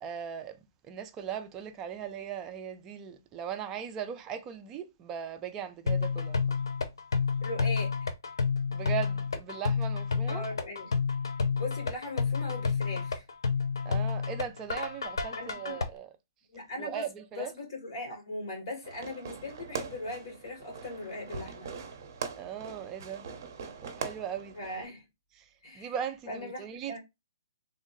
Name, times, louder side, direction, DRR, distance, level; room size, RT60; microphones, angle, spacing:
voice 1, 0.0-0.6 0.8-6.6 8.7-10.4 13.8-16.1 16.8-17.5 22.4-23.3 23.8-24.6 25.4-25.5 25.7-27.0, right 8 dB, 20° right, 0.4 m, -38 dB
sound 1, 5.9-15.9, left 5 dB, 85° left, 0.7 m, -30 dB
voice 2, 7.4-8.1 10.3-10.9 11.5-13.2 15.4-15.8 16.5-21.7 24.5-25.0 25.6-25.9 26.3-27.0, left 2 dB, 50° left, 2.3 m, -39 dB
Fireworks, 18.8-24.9, right 5 dB, 50° right, 0.7 m, -41 dB
3.5 x 2.1 x 3.7 m
hypercardioid pair, 160°, 2 cm